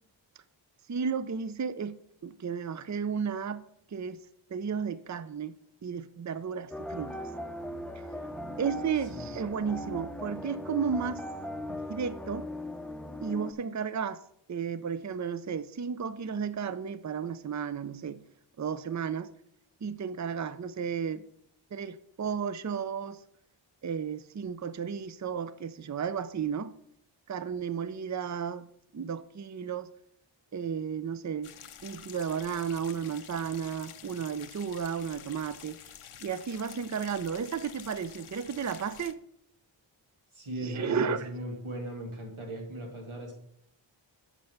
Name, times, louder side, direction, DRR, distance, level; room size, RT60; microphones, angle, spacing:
voice 1, 0.9-1.9 2.2-3.6 3.9-4.2 4.5-5.5 5.8-7.2 8.6-11.2 11.7-12.5 13.2-14.2 14.5-18.2 18.6-19.3 19.8-21.2 21.7-23.2 23.8-26.7 27.3-28.7 28.9-29.9 30.5-31.5 31.8-35.8 36.2-39.2 40.6-41.3, right 6 dB, 35° right, 0.5 m, -33 dB
sound 1, 6.7-13.5, left 1 dB, ahead, 0.6 m, -39 dB
sound 2, 31.4-39.1, left 8 dB, 85° left, 0.7 m, -49 dB
voice 2, 40.3-43.4, right 1 dB, 80° right, 2.5 m, -38 dB
7.5 x 5.7 x 6.6 m
wide cardioid pair, 60°, 49 cm